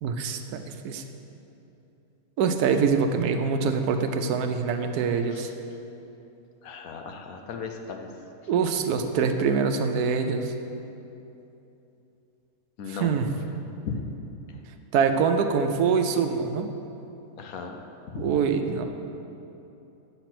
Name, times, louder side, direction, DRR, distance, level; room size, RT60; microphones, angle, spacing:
voice 1, 0.0-1.0 2.4-5.5 8.5-10.5 12.9-13.3 14.9-16.7 18.2-18.9, right 5 dB, 85° right, 7 dB, 1.2 m, -24 dB
voice 2, 6.6-8.1 12.8-13.1 13.8-14.0 17.4-17.8 18.1-18.3, left 5 dB, 70° left, 4 dB, 1.2 m, -36 dB
9.3 x 6.0 x 5.9 m, 2.9 s
omnidirectional pair, 1.6 m